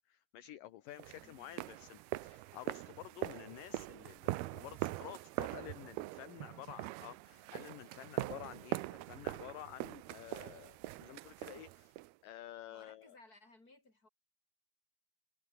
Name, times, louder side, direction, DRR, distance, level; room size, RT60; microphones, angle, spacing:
voice 1, 0.1-13.2, left 13 dB, 65° left, 2.5 m, -51 dB
sound 1, 1.0-12.1, right 18 dB, 75° right, 2.5 m, -42 dB
voice 2, 1.2-1.7 6.4-6.9 12.7-14.1, left 2 dB, 20° left, 7.3 m, -63 dB
sound 2, 4.8-7.8 8.2-11.2, left 5 dB, 80° left, 8.7 m, -80 dB
omnidirectional pair, 5.0 m